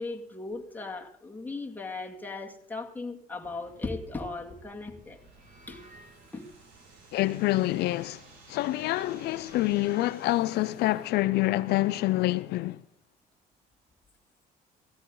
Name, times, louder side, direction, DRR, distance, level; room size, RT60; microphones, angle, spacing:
voice 1, 0.0-5.2 5.7-5.8 6.3-6.5, left 3 dB, 10° left, 2.4 m, -37 dB
sound 1, 3.4-9.8, right 3 dB, 50° right, 2.3 m, -58 dB
sound 2, 5.0-11.1, right 3 dB, 85° right, 5.0 m, -56 dB
voice 2, 7.1-8.2 8.5-12.8, left 17 dB, 75° left, 0.5 m, -26 dB
17.0 x 16.0 x 3.9 m
cardioid pair, 110°, 17 cm